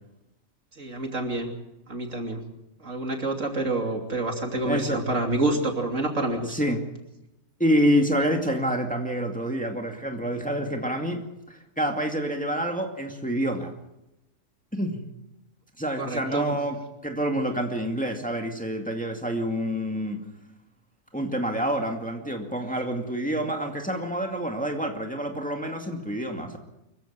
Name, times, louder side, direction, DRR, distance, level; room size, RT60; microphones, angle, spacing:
voice 1, 0.8-1.5 1.9-2.4 2.8-6.5 16.0-16.4, right 2 dB, 70° right, 3 dB, 3.3 m, -28 dB
voice 2, 4.7-5.0 6.5-6.8 7.6-11.2 11.5-13.7 14.7-15.0 15.8-20.2 21.1-26.6, equal, 5° left, 3 dB, 2.3 m, -27 dB
24.5 x 15.5 x 7.5 m, 0.90 s
omnidirectional pair, 1.4 m